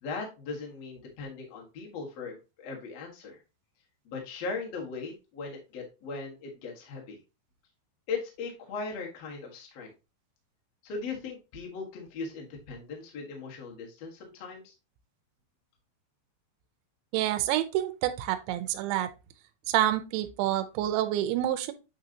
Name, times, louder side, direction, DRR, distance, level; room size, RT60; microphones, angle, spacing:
voice 1, 0.0-3.4 4.0-7.2 8.1-9.9 10.8-14.7, left 4 dB, 70° left, 0 dB, 1.5 m, -38 dB
voice 2, 17.1-19.1 19.7-21.7, right 13 dB, 80° right, 7 dB, 2.9 m, -28 dB
8.7 x 4.0 x 2.8 m, 0.28 s
omnidirectional pair, 5.4 m